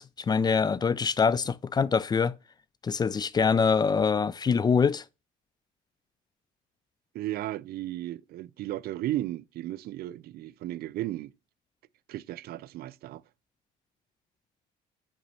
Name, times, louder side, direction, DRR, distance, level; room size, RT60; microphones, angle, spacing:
voice 1, 0.0-2.3 2.8-5.0, left 5 dB, 25° left, 0.3 m, -24 dB
voice 2, 7.1-11.3 12.1-13.2, right 14 dB, 65° right, 0.4 m, -35 dB
5.7 x 5.2 x 5.5 m
cardioid pair, 110°, 17 cm